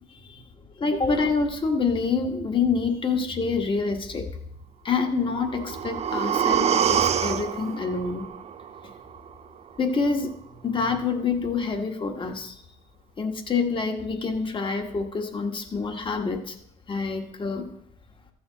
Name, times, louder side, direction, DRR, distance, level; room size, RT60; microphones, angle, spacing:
voice 1, 0.1-0.4 0.8-4.3 4.8-8.3 9.8-10.3 10.6-12.6 13.2-16.6 16.9-17.7, left 4 dB, 30° left, 5 dB, 1.4 m, -27 dB
sound 1, 5.3-9.3 9.7-9.8, right 8 dB, 40° right, 0.5 m, -26 dB
13.5 x 7.0 x 3.9 m, 0.74 s
cardioid pair, 110°, 17 cm